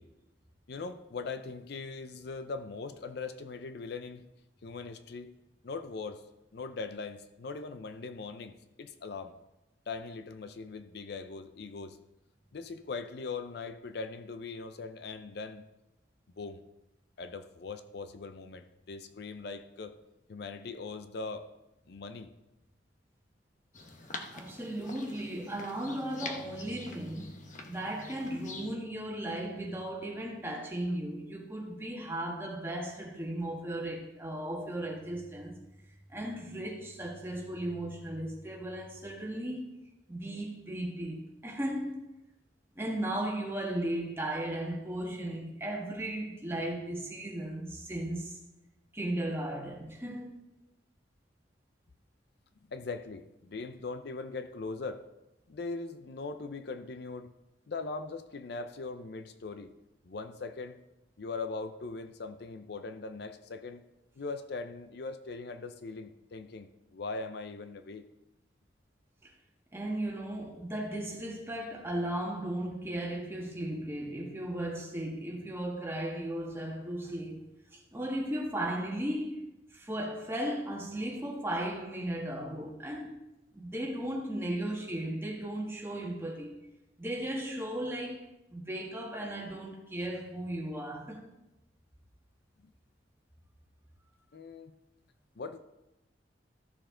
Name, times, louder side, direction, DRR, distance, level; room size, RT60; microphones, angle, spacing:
voice 1, 0.7-4.2 4.6-5.3 5.6-6.2 6.5-9.3 9.9-12.0 12.5-15.6 16.4-16.6 17.2-19.9 20.3-21.5 21.9-22.3 26.4-26.5 52.7-55.0 55.5-57.3 57.7-59.7 60.0-60.8 61.2-63.8 64.2-68.0 94.3-94.7 95.4-95.6, left 4 dB, 60° left, 0.5 m, -40 dB
sound 1, 23.7-28.7, left 3 dB, 45° left, 1.0 m, -45 dB
voice 2, 24.3-27.3 27.6-35.5 36.1-39.6 40.1-41.9 42.7-48.4 48.9-50.4 69.7-77.5 77.7-79.5 79.7-83.1 83.5-86.5 87.0-91.2, right 1 dB, 15° right, 1.6 m, -36 dB
14.0 x 6.6 x 3.8 m
head